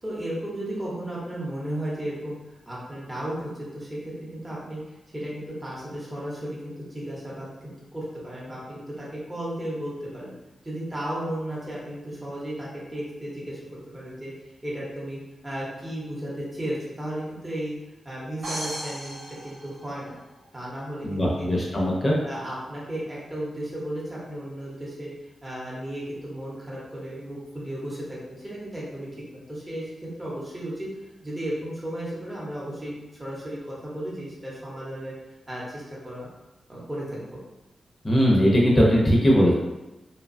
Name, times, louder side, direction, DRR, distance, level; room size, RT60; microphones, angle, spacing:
voice 1, 0.0-4.8 5.1-10.3 10.6-14.3 14.6-17.7 18.0-20.2 20.5-21.5 22.2-25.1 25.4-29.9 30.2-30.9 31.2-35.1 35.5-36.3 36.7-37.2, right 1 dB, 15° right, -7 dB, 0.8 m, -34 dB
sound 1, 18.4-20.4, right 1 dB, 80° right, 1.0 m, -36 dB
voice 2, 21.0-22.2 38.0-39.5, equal, 30° left, -4 dB, 0.6 m, -19 dB
2.8 x 2.2 x 2.5 m, 1.0 s
cardioid pair, 90°, 0 cm